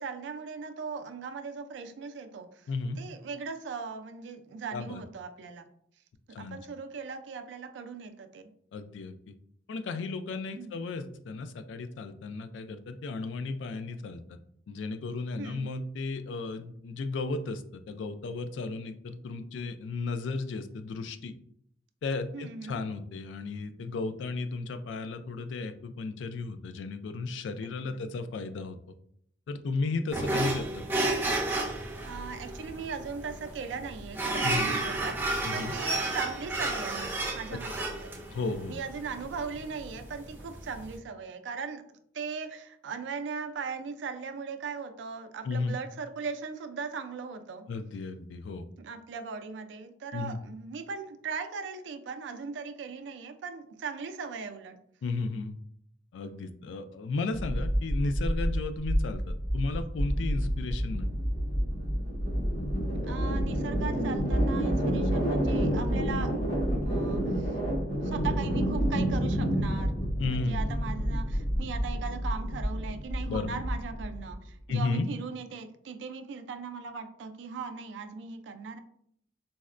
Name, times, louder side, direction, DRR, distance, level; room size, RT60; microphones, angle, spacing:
voice 1, 0.0-2.7 3.0-5.7 6.3-8.5 10.6-10.7 15.4-15.7 22.3-22.8 27.6-28.1 32.1-38.4 38.7-41.8 42.1-47.7 48.8-54.8 63.0-66.3 66.7-67.6 68.0-69.9 70.3-78.8, right 5 dB, 85° right, 8 dB, 0.4 m, -39 dB
voice 2, 2.7-3.0 4.7-5.0 6.3-6.6 8.7-9.3 9.7-14.4 14.7-21.3 22.0-28.8 29.5-31.1 34.4-34.7 35.4-35.7 37.5-37.8 38.3-38.8 45.4-45.8 47.7-48.6 50.1-50.4 55.0-55.5 56.1-61.1 70.2-70.7 73.2-73.5 74.7-75.1, left 3 dB, 90° left, 10 dB, 0.3 m, -34 dB
sound 1, 30.1-41.0, right 2 dB, 10° right, 0.4 m, -32 dB
sound 2, 57.4-74.3, equal, 70° left, 1.5 m, -29 dB
4.0 x 2.1 x 2.4 m, 0.68 s
head